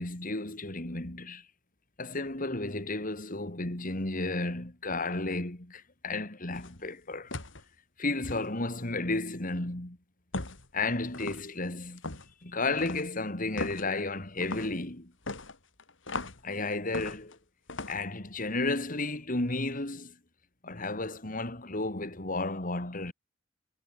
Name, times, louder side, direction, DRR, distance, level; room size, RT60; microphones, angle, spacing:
voice 1, 0.0-1.5 2.0-7.3 8.0-10.0 10.7-12.0 12.4-15.1 16.4-17.4 17.9-20.2 20.6-23.1, left 2 dB, 45° left, 3.1 m, -33 dB
sound 1, 6.5-6.8 7.3-7.6 8.2-8.5 10.3-10.7 11.1-11.5 12.0-12.3 12.8-13.1 13.6-13.9 14.4-14.7 15.3-16.4 16.9-17.4 17.7-18.0, left 2 dB, 80° left, 3.6 m, -37 dB
head